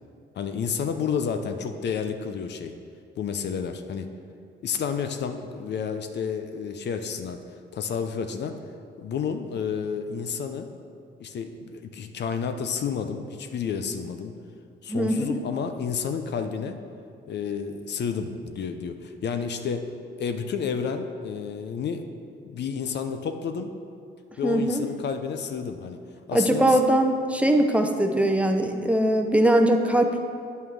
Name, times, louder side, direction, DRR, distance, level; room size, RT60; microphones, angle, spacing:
voice 1, 0.3-2.7 3.2-4.1 4.6-7.4 7.7-8.6 9.0-10.7 11.2-14.3 14.8-16.8 17.3-19.9 20.2-22.0 22.4-23.7 24.4-26.0 26.3-26.8, left 6 dB, 60° left, 7 dB, 0.7 m, -30 dB
voice 2, 14.9-15.4 24.4-24.8 26.3-30.2, right 1 dB, 5° right, 4 dB, 0.7 m, -21 dB
9.3 x 5.6 x 6.4 m, 2.4 s
cardioid pair, 90°, 20 cm